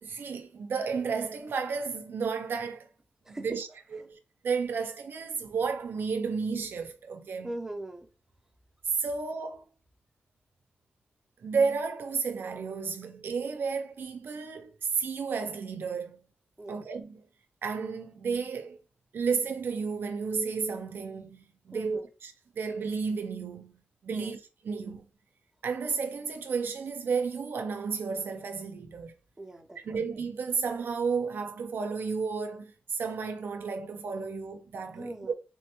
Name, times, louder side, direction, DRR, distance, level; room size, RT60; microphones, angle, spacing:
voice 1, 0.0-2.9 3.3-4.2 4.4-7.5 9.0-9.7 11.4-16.2 16.7-17.2 17.6-18.8 19.1-25.1 25.6-29.1 29.8-35.1, right 5 dB, 70° right, 0.4 m, -32 dB
voice 2, 7.4-8.1 16.6-16.8 21.7-22.1 24.1-24.4 29.4-30.0 34.9-35.3, right 1 dB, 10° right, 0.5 m, -40 dB
3.5 x 2.1 x 2.9 m
wide cardioid pair, 165°, 4 cm